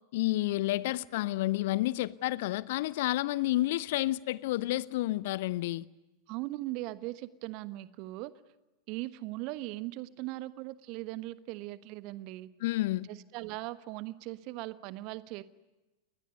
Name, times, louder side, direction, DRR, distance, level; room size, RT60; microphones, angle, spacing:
voice 1, 0.1-5.9 12.6-13.1, left 16 dB, 50° left, 0.8 m, -30 dB
voice 2, 6.3-8.3 8.9-12.5 13.1-15.4, right 18 dB, 45° right, 1.3 m, -39 dB
29.0 x 21.0 x 9.5 m
figure-of-eight pair, 90°, 0 cm